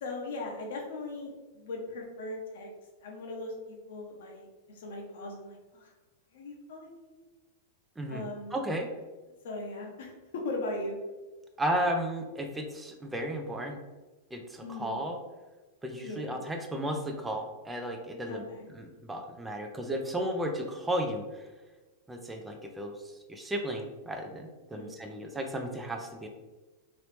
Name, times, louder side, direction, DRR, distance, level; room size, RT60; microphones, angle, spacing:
voice 1, 0.0-2.7 3.0-5.9 6.3-7.1 8.1-8.6 9.4-11.0 14.6-15.0 16.0-16.4 18.3-18.7 24.7-25.2, left 2 dB, 65° left, 0 dB, 0.8 m, -39 dB
voice 2, 8.5-8.9 11.6-13.8 14.3-15.2 15.8-18.4 18.7-21.5 22.1-26.3, right 1 dB, 10° right, 3 dB, 0.4 m, -34 dB
3.0 x 2.8 x 3.1 m, 1.2 s
hypercardioid pair, 105°, 0 cm